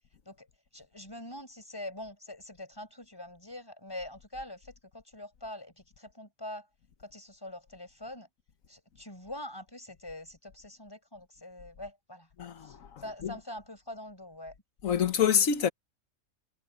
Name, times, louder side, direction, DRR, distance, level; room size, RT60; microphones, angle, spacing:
voice 1, 0.3-6.7 7.0-8.3 8.7-12.3 12.6-14.5, left 1 dB, 15° left, 5.5 m, -44 dB
voice 2, 12.4-13.3 14.8-15.7, left 8 dB, 85° left, 1.5 m, -27 dB
omnidirectional pair, 1.4 m